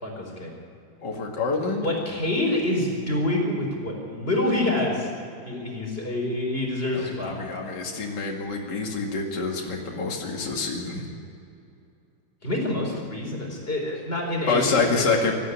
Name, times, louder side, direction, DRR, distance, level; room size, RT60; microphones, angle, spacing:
voice 1, 0.0-0.5 1.8-5.1 5.5-7.3 12.4-14.9, left 1 dB, 25° left, 0 dB, 4.5 m, -27 dB
voice 2, 1.0-1.9 6.9-11.0 14.5-15.3, left 4 dB, 55° left, -1 dB, 2.7 m, -27 dB
18.5 x 14.0 x 9.9 m, 2.6 s
omnidirectional pair, 2.3 m